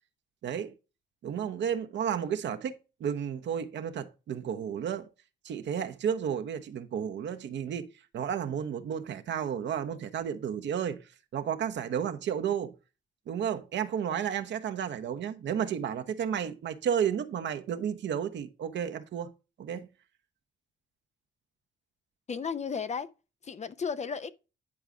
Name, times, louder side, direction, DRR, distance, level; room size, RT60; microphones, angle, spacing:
voice 1, 0.4-0.7 1.2-2.7 3.0-5.1 5.4-7.9 8.1-11.0 11.3-12.7 13.3-19.3 19.6-19.9, right 8 dB, 65° right, 1.0 m, -32 dB
voice 2, 22.3-23.1 23.4-24.3, left 6 dB, 35° left, 0.7 m, -34 dB
10.0 x 4.8 x 3.7 m
cardioid pair, 90°, 20 cm